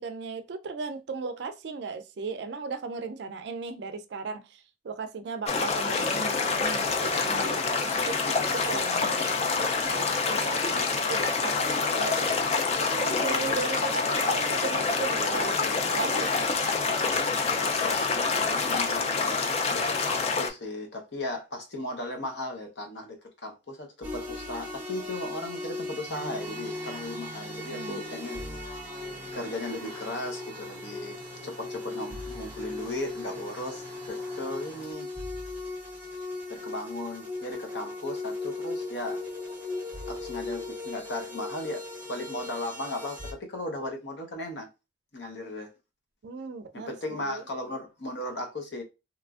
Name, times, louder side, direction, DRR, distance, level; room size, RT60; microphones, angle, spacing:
voice 1, 0.0-16.4 27.5-28.0 46.2-46.9 47.2-47.4, right 4 dB, 65° right, 0.4 m, -37 dB
sound 1, 5.5-20.5, left 4 dB, 35° left, 0.3 m, -27 dB
voice 2, 17.4-19.4 19.7-23.2 23.4-28.4 29.3-35.1 36.5-39.2 40.1-44.7 45.1-45.7 46.7-48.8, left 1 dB, 65° left, 0.7 m, -36 dB
sound 2, 24.0-43.3, left 2 dB, 10° right, 0.6 m, -38 dB
sound 3, 26.1-34.9, right 1 dB, 15° left, 1.2 m, -46 dB
2.9 x 2.4 x 2.3 m
head